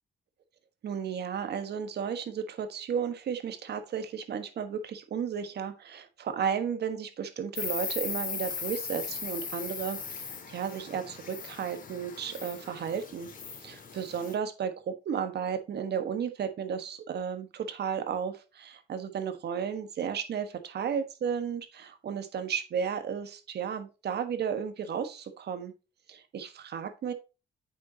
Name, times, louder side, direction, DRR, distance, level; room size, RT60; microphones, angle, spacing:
voice 1, 0.8-13.3 13.6-25.7 26.1-27.1, right 7 dB, 60° right, 9 dB, 1.4 m, -33 dB
Insect, 7.6-14.3, left 6 dB, 45° left, 2.1 m, -38 dB
8.5 x 6.4 x 2.8 m, 0.29 s
cardioid pair, 105°, 19 cm